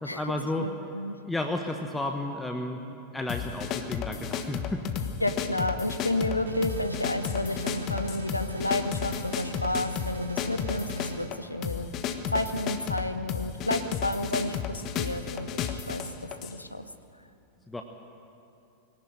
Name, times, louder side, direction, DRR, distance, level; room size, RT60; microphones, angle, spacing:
voice 1, 0.0-0.7 1.2-2.8 3.1-5.0 17.7-17.8, left 1 dB, 10° left, 4 dB, 1.3 m, -32 dB
voice 2, 0.6-1.2 5.2-10.9 11.2-11.9 12.3-16.0 16.4-16.9, left 1 dB, 85° left, 9 dB, 1.1 m, -31 dB
sound 1, 3.3-16.6, left 8 dB, 35° left, 1.3 m, -33 dB
sound 2, 6.4-11.3, right 1 dB, 70° right, 1.8 m, -38 dB
23.0 x 18.0 x 9.1 m, 2.9 s
figure-of-eight pair, 90°, 0 cm